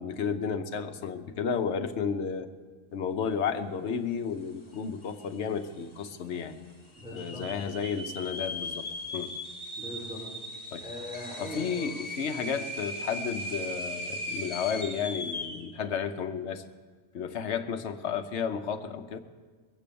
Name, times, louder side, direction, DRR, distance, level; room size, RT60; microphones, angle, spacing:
voice 1, 0.0-2.5 2.9-6.6 7.1-9.4 10.7-10.9 11.4-16.6 17.1-19.2, left 6 dB, 70° left, 8 dB, 1.1 m, -32 dB
sound 1, 4.8-4.9 5.1-5.6 6.1-6.2 7.0-15.7, left 1 dB, 25° left, 1.3 m, -38 dB
voice 2, 7.0-7.7 9.8-10.2 10.8-11.9 12.4-12.5, equal, 5° right, -7 dB, 4.0 m, -41 dB
21.0 x 8.3 x 6.9 m, 1.5 s
omnidirectional pair, 1.2 m